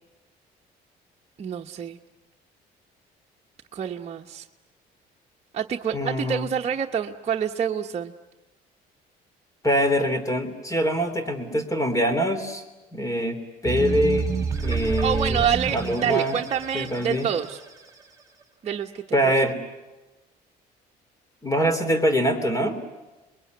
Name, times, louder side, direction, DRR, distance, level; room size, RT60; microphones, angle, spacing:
voice 1, 1.4-2.0 3.7-4.4 5.5-8.1 15.0-17.6 18.6-19.2, right 8 dB, 40° right, 1 dB, 1.1 m, -27 dB
voice 2, 5.9-6.5 9.6-12.6 12.9-14.3 14.6-16.4 16.7-17.3 19.1-19.6 21.4-22.8, equal, 20° left, 10 dB, 3.5 m, -24 dB
sound 1, 13.6-18.0, right 5 dB, 20° right, 3.7 m, -29 dB
28.0 x 22.0 x 9.5 m, 1.1 s
cardioid pair, 110°, 17 cm